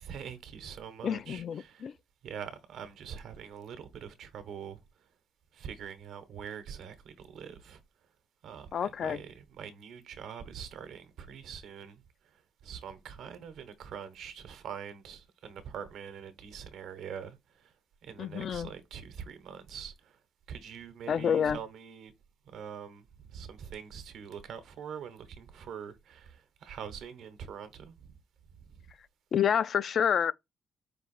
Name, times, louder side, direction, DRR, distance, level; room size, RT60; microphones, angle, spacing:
voice 1, 0.0-1.9 2.2-4.8 5.5-7.8 8.4-12.0 12.6-17.4 18.0-20.1 20.5-22.1 22.5-28.2 28.7-28.8, right 7 dB, 75° right, 0.9 m, -44 dB
voice 2, 1.0-1.9 8.7-9.2 18.2-18.7 21.1-21.6 29.3-30.3, left 8 dB, 55° left, 0.3 m, -28 dB
5.0 x 2.5 x 4.0 m
cardioid pair, 90°, 0 cm